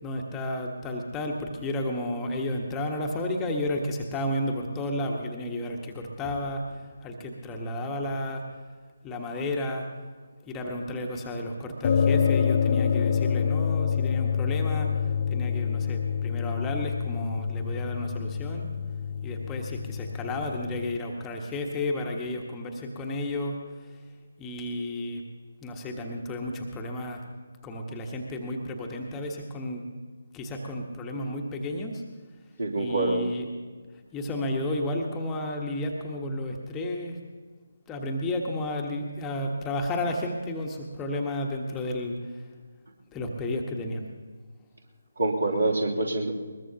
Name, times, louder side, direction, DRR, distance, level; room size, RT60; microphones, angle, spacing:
voice 1, 0.0-8.4 9.0-9.9 10.4-15.0 15.3-18.7 19.2-24.0 24.4-25.2 25.6-27.2 27.6-29.8 30.3-32.0 32.7-33.5 34.1-37.2 37.9-42.5 43.1-44.1, left 1 dB, 10° left, 1 dB, 1.3 m, -32 dB
sound 1, 11.8-21.0, left 7 dB, 40° left, 0.5 m, -27 dB
voice 2, 32.6-33.3 45.2-46.3, right 2 dB, 65° right, 1 dB, 3.0 m, -26 dB
21.5 x 20.5 x 2.9 m, 1.5 s
figure-of-eight pair, 145°, 0 cm